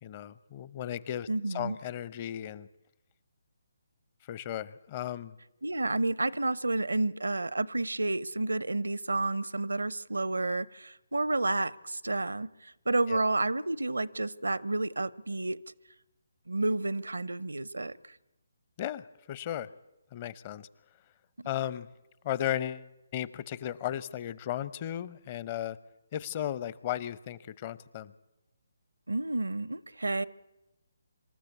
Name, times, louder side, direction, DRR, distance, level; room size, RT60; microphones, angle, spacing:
voice 1, 0.0-2.7 4.3-5.4 13.1-13.2 18.8-19.7 20.1-20.7 21.5-21.9 22.2-22.9 23.1-25.8 26.1-28.1, left 11 dB, 30° left, 18 dB, 0.7 m, -35 dB
voice 2, 1.3-1.8 5.6-15.6 16.5-18.1 29.1-30.2, right 2 dB, 80° right, 21 dB, 0.7 m, -30 dB
26.0 x 13.0 x 8.4 m, 0.97 s
figure-of-eight pair, 145°, 0 cm